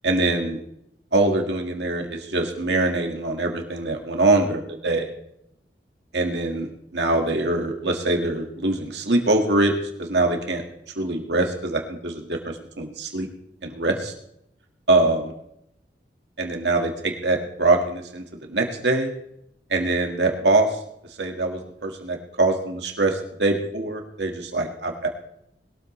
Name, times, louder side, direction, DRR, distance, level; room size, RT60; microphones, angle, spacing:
voice 1, 0.0-0.6 1.1-5.1 6.1-9.7 10.0-10.6 11.0-12.4 12.8-13.3 13.6-14.1 14.9-15.2 16.4-19.1 19.7-20.8 21.2-25.1, right 2 dB, 75° right, 3 dB, 1.8 m, -23 dB
21.0 x 13.0 x 3.2 m, 0.76 s
head